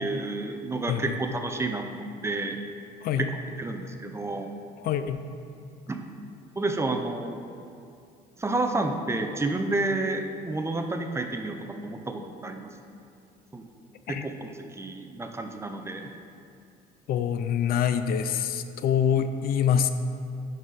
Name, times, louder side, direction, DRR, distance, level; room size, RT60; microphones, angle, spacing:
voice 1, 0.0-2.6 3.2-3.3 3.6-4.5 5.9-6.1 6.6-7.4 8.4-11.6 11.8-12.7 13.5-13.7 14.1-14.5 14.8-16.1, right 2 dB, 15° right, 5 dB, 0.5 m, -30 dB
voice 2, 0.9-1.2 3.0-3.3 4.8-5.2 14.1-14.3 17.1-19.9, left 8 dB, 60° left, 10 dB, 0.4 m, -25 dB
11.0 x 4.0 x 4.0 m, 2.4 s
cardioid pair, 110°, 17 cm